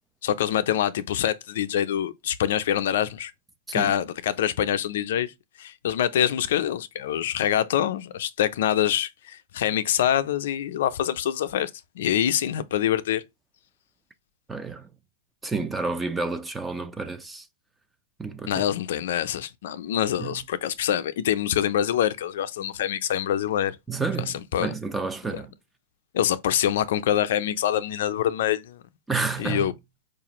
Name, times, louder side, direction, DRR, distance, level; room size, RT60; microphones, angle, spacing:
voice 1, 0.2-3.3 3.7-5.3 5.6-11.7 12.0-13.2 18.5-23.8 24.5-24.7 25.3-25.4 26.1-28.8 29.4-29.7, left 10 dB, 70° left, 0.4 m, -25 dB
voice 2, 14.5-14.9 15.4-17.5 18.2-18.6 20.2-20.4 23.9-25.5 29.1-29.7, right 4 dB, 10° right, 0.5 m, -30 dB
4.7 x 2.5 x 3.0 m
supercardioid pair, 145°, 0 cm